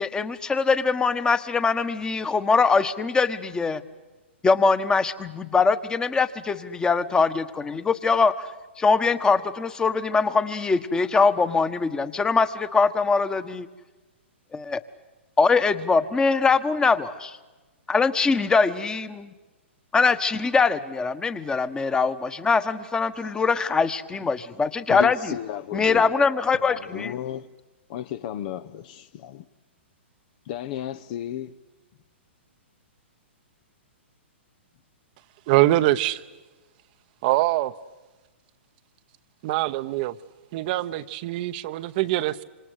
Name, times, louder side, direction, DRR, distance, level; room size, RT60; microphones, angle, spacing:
voice 1, 0.0-3.8 4.4-8.5 8.8-13.7 14.5-14.8 15.4-17.4 17.9-19.3 19.9-25.2 25.7-27.1, left 4 dB, 10° left, 1.3 m, -22 dB
voice 2, 24.9-26.1 26.5-27.5 27.9-29.5 30.5-31.5, left 11 dB, 45° left, 0.9 m, -33 dB
voice 3, 35.5-36.2 37.2-37.7 39.4-40.2 40.5-42.4, right 16 dB, 45° right, 0.9 m, -23 dB
27.0 x 26.5 x 8.2 m
hypercardioid pair, 125°, 6 cm